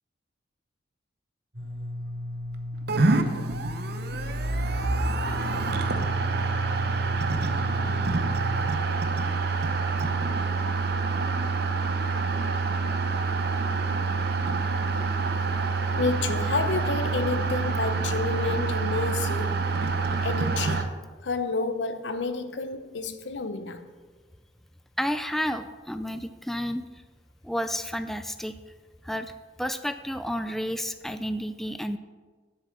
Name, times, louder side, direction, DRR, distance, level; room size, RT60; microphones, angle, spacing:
sound 1, 1.5-8.7, left 1 dB, 90° right, 3.7 m, -35 dB
sound 2, 2.9-20.8, right 3 dB, 60° right, 0.8 m, -27 dB
voice 1, 15.9-19.6 20.2-20.9 21.2-23.9, left 3 dB, 75° left, 0.8 m, -30 dB
voice 2, 25.0-26.8 27.4-28.5 29.0-29.3 29.6-32.0, equal, ahead, 0.3 m, -31 dB
7.8 x 6.6 x 7.3 m
head